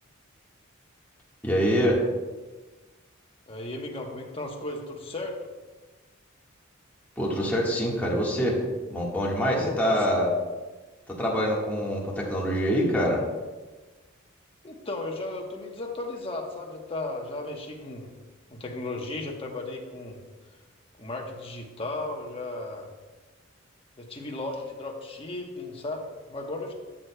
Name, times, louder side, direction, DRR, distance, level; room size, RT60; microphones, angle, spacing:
voice 1, 1.4-2.0 7.2-8.5 8.9-10.3 11.2-13.2, equal, 10° left, -4 dB, 1.5 m, -25 dB
voice 2, 3.5-5.4 9.5-10.0 14.6-18.1 18.5-20.2 21.0-22.9 24.0-26.7, left 2 dB, 30° left, 0 dB, 1.1 m, -35 dB
12.5 x 6.5 x 2.2 m, 1.3 s
head